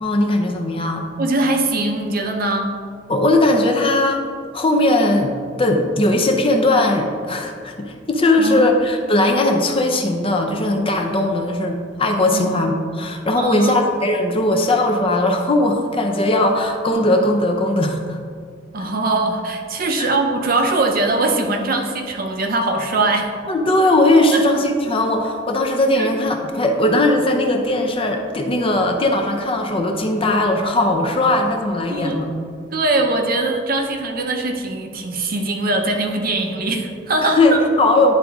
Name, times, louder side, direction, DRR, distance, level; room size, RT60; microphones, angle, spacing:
voice 1, 0.0-1.0 3.1-4.2 4.5-18.2 20.0-20.1 23.5-32.4 37.2-38.1, left 1 dB, 30° left, 3 dB, 0.6 m, -18 dB
voice 2, 1.2-2.7 8.4-8.7 12.3-12.5 13.4-13.8 18.7-23.3 24.3-24.4 26.0-26.1 31.9-32.2 32.7-37.6, right 2 dB, 50° right, 3 dB, 0.7 m, -21 dB
10.5 x 3.6 x 3.5 m, 2.1 s
head